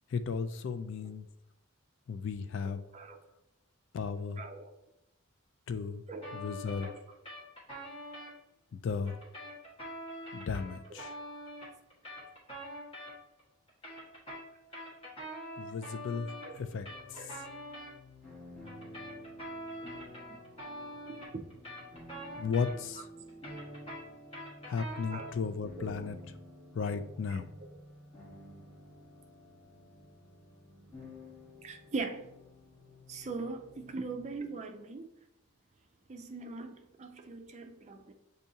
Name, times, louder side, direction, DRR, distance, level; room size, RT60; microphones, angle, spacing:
voice 1, 0.1-1.2 2.1-2.8 3.9-4.4 5.7-6.0 6.3-6.9 8.7-9.2 10.3-11.2 15.6-16.3 16.6-16.9 17.1-17.2 22.4-23.1 24.7-26.2 26.7-27.5, left 5 dB, 60° left, 9 dB, 0.3 m, -35 dB
voice 2, 2.6-3.2 4.4-4.7 6.1-6.3 6.8-7.0 10.9-11.0 16.1-16.6 17.1-17.3 19.8-19.9 20.3-20.4 21.1-21.4 25.1-25.3 25.8-25.9 27.3-27.7 31.6-32.3 33.1-35.1 36.1-38.1, right 3 dB, 30° right, 5 dB, 0.4 m, -41 dB
sound 1, 6.2-8.3 9.1-13.4 13.7-17.9 18.7-23.0 23.3-25.4, equal, 25° left, 1.5 m, -45 dB
sound 2, 16.5-34.4, left 1 dB, 5° left, 1.3 m, -52 dB
6.8 x 2.7 x 2.7 m, 0.84 s
head